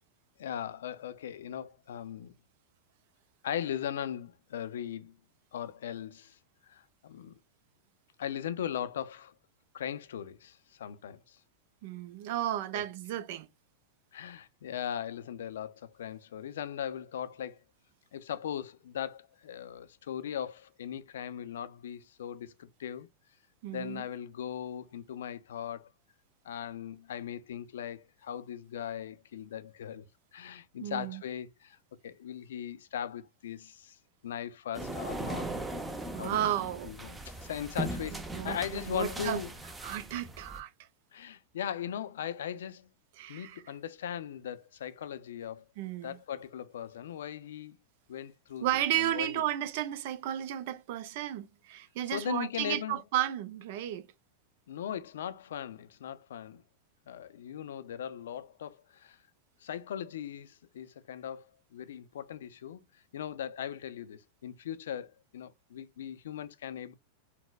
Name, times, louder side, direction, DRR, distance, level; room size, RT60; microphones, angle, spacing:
voice 1, 0.4-2.3 3.4-5.1 5.5-6.4 6.7-7.4 8.2-9.3 9.7-11.4 12.7-12.8 14.1-17.6 18.1-23.1 23.7-25.9 26.4-30.1 30.3-31.8 32.0-34.0 34.2-35.5 36.1-36.5 36.8-39.5 41.1-42.9 43.3-45.6 46.0-47.8 48.1-48.7 48.9-49.4 52.1-53.0 54.7-56.6 57.1-59.2 59.6-61.5 61.7-62.8 63.1-66.9, left 9 dB, 85° left, 0.4 m, -39 dB
voice 2, 11.8-13.5 23.6-24.1 30.8-31.2 36.1-36.9 38.1-39.4 39.8-40.7 43.2-43.6 45.8-46.2 48.6-54.1, right 12 dB, 60° right, 0.4 m, -33 dB
sound 1, 34.7-40.6, right 1 dB, 10° right, 0.5 m, -39 dB
4.1 x 2.1 x 2.2 m
supercardioid pair, 130°, 0 cm